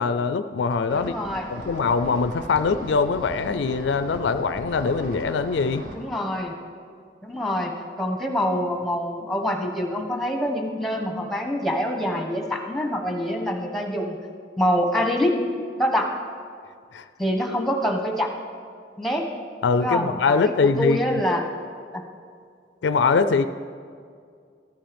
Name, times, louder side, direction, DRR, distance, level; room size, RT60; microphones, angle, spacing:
voice 1, 0.0-1.1 1.5-5.8 16.9-17.1 19.6-21.2 22.8-23.4, left 4 dB, 80° left, 11 dB, 0.4 m, -22 dB
voice 2, 0.9-1.4 5.9-6.5 7.2-14.2 14.6-15.4 15.8-16.1 17.2-18.3 19.0-19.2 19.8-21.5 21.9-22.0, equal, ahead, 2 dB, 1.1 m, -25 dB
sound 1, 0.9-5.9, equal, 50° right, 1.6 m, -39 dB
14.5 x 10.5 x 5.2 m, 2.2 s
head